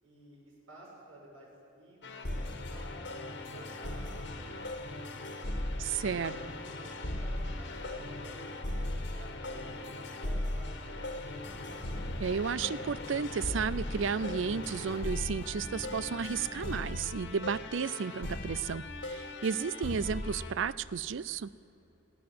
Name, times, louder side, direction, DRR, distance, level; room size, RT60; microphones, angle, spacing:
voice 1, 0.0-3.1 3.5-4.7 5.2-5.5 6.2-11.5, right 1 dB, 85° right, -2 dB, 6.4 m, -53 dB
sound 1, 2.0-20.5, left 1 dB, 60° left, 1.7 m, -38 dB
voice 2, 5.8-6.4 12.2-21.5, right 6 dB, 65° right, 19 dB, 0.5 m, -33 dB
sound 2, 11.4-17.0, equal, 30° left, 1.6 m, -48 dB
21.0 x 16.0 x 7.7 m, 2.8 s
head